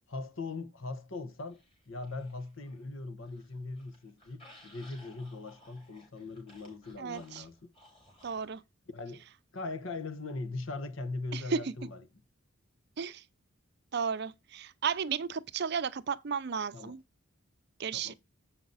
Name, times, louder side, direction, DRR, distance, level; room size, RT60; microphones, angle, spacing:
voice 1, 0.1-1.6 1.9-7.7 8.9-9.2 9.5-12.0 16.7-16.9 17.9-18.1, left 3 dB, 65° left, 1.1 m, -40 dB
sound 1, 1.5-2.9 3.2-8.5, left 1 dB, 25° left, 4.1 m, -59 dB
voice 2, 7.0-7.4 8.2-8.6 11.3-11.7 13.0-13.2 13.9-17.0 17.8-18.1, right 6 dB, 50° right, 0.5 m, -34 dB
8.0 x 5.9 x 4.0 m
head